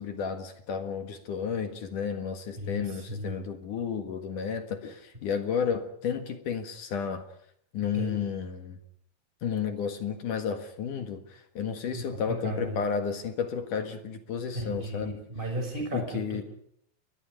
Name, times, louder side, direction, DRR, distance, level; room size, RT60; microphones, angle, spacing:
voice 1, 0.0-7.3 7.7-8.8 9.4-15.2 15.9-16.4, left 6 dB, 55° left, 7 dB, 2.7 m, -32 dB
voice 2, 2.6-3.3 7.9-8.3 11.9-12.8 14.5-16.4, right 1 dB, 10° right, 3 dB, 6.1 m, -35 dB
30.0 x 22.0 x 5.1 m, 0.67 s
omnidirectional pair, 5.2 m